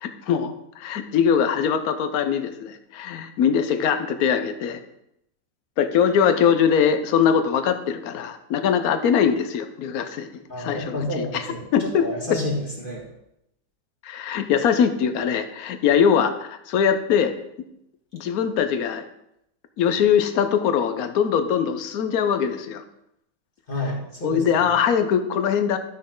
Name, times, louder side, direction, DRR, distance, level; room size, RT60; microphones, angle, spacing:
voice 1, 0.0-4.8 5.8-12.0 12.3-12.4 14.0-17.3 18.1-19.0 19.8-22.8 24.2-25.8, left 7 dB, 65° left, 9 dB, 1.2 m, -22 dB
voice 2, 10.5-13.1 23.7-24.8, left 1 dB, 30° left, -3 dB, 2.0 m, -30 dB
12.5 x 6.3 x 3.8 m, 0.81 s
omnidirectional pair, 1.8 m